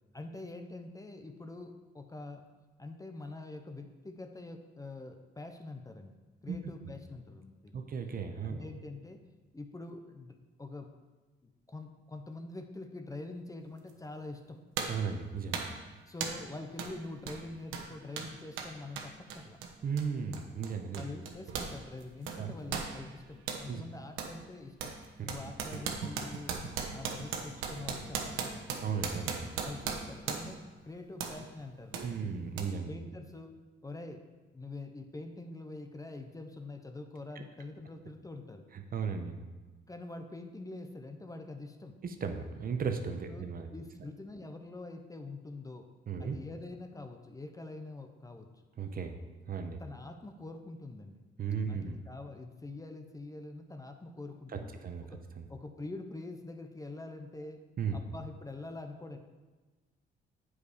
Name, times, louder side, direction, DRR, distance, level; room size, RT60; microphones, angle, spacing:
voice 1, 0.1-2.4 2.8-6.1 6.4-7.9 8.4-9.2 9.5-10.9 11.4-14.6 16.1-19.6 20.9-25.0 25.2-26.5 26.9-28.7 29.6-30.6 30.8-32.3 32.9-33.5 33.8-34.2 34.5-38.6 39.9-42.0 43.3-43.5 43.7-45.9 46.2-48.5 49.8-51.2 51.6-55.2 55.5-57.6 57.9-59.2, left 2 dB, 15° left, 6 dB, 0.7 m, -45 dB
voice 2, 7.7-8.6 14.9-15.7 19.8-21.0 22.3-22.6 23.7-23.8 25.2-25.3 28.8-29.5 31.9-32.9 37.4-37.5 38.9-39.4 42.0-43.7 46.1-46.4 48.8-49.1 49.5-49.8 51.4-52.0 54.8-55.1 55.4-55.5 57.8-58.0, right 6 dB, 45° right, 6 dB, 0.8 m, -35 dB
sound 1, 13.9-14.0 14.8-15.1 15.5-15.8 16.2-16.5 16.8-17.0 17.2-21.8 22.0-23.7 24.2-24.4 24.8-30.6 31.2-31.4 31.9-32.1 32.6-32.7, right 6 dB, 85° right, 0.9 m, -38 dB
8.0 x 4.8 x 4.9 m, 1.3 s
cardioid pair, 90°, 20 cm